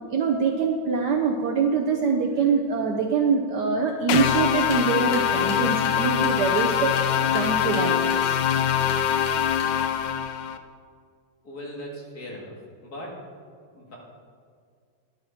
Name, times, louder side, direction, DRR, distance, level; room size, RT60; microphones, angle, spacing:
voice 1, 0.1-8.4, right 5 dB, 65° right, 3 dB, 1.1 m, -24 dB
sound 1, 4.1-10.6, left 9 dB, 70° left, 1.1 m, -23 dB
sound 2, 4.5-10.0, left 2 dB, 90° left, 2.7 m, -43 dB
voice 2, 11.4-12.5 12.8-13.2 13.7-14.0, equal, 45° left, -2 dB, 2.4 m, -38 dB
11.5 x 10.5 x 4.3 m, 2.1 s
omnidirectional pair, 2.4 m